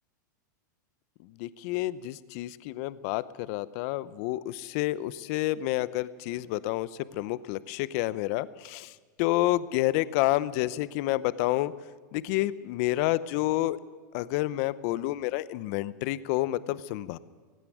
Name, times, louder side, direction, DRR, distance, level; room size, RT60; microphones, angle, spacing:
voice 1, 1.2-11.7 12.1-13.8 14.1-17.2, left 16 dB, 50° left, 17 dB, 0.7 m, -29 dB
18.0 x 16.0 x 9.2 m, 1.5 s
supercardioid pair, 140°, 10 cm